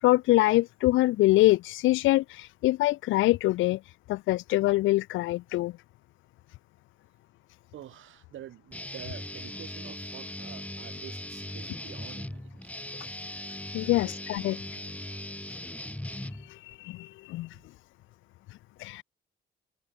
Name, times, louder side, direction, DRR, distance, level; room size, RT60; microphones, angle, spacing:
voice 1, 0.0-5.7 13.7-14.6 16.1-17.6 18.8-19.0, left 18 dB, 80° left, 0.4 m, -25 dB
voice 2, 7.7-12.7 13.9-14.4 17.5-17.7, right 12 dB, 75° right, 6.3 m, -48 dB
Guitar, 8.7-16.7, left 1 dB, 5° left, 4.2 m, -39 dB
cardioid pair, 90°, 20 cm